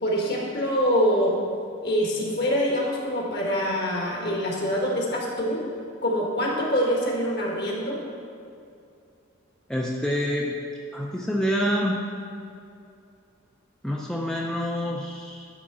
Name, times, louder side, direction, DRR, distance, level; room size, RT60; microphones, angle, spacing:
voice 1, 0.0-1.3 1.8-5.6 6.0-8.0, equal, 50° left, -2 dB, 1.6 m, -25 dB
voice 2, 9.7-10.6 10.9-12.0 13.8-15.5, equal, 5° left, -3 dB, 0.5 m, -27 dB
11.0 x 3.8 x 6.0 m, 2.5 s
head